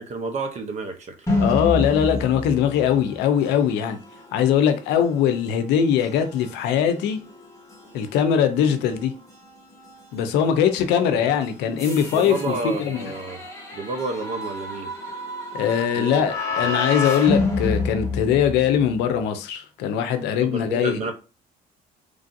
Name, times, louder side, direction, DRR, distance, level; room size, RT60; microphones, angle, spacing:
voice 1, 0.0-1.3 8.6-8.8 11.0-11.3 12.1-13.4 13.7-14.9 15.9-16.2 16.6-16.7 20.4-21.1, right 3 dB, 45° right, 0.7 m, -30 dB
sound 1, 1.3-19.0, left 3 dB, 15° left, 1.2 m, -30 dB
voice 2, 1.4-4.0 4.3-7.2 7.9-9.1 10.1-13.0 15.5-21.1, left 8 dB, 90° left, 0.5 m, -21 dB
3.2 x 2.5 x 2.6 m
cardioid pair, 110°, 17 cm